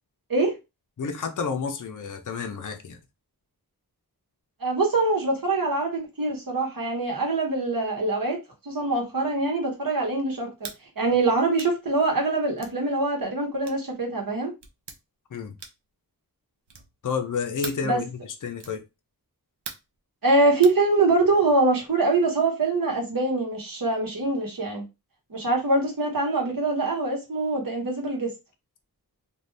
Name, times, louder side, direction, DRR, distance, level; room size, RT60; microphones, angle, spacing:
voice 1, 1.0-3.0 15.3-15.6 17.0-18.8, left 5 dB, 50° left, 0.5 m, -30 dB
voice 2, 4.6-8.4 8.7-10.7 11.0-14.5 17.8-18.0 20.2-24.8 25.3-28.3, right 2 dB, 60° right, 1.2 m, -24 dB
sound 1, 10.6-10.8 11.6-11.8 12.6-12.8 13.6-13.9 14.6-15.0 15.6-15.9 16.7-17.0 17.6-17.9 18.6-18.8 19.7-20.0 20.6-20.8, right 5 dB, 85° right, 0.7 m, -40 dB
2.6 x 2.3 x 3.2 m
wide cardioid pair, 75°, 39 cm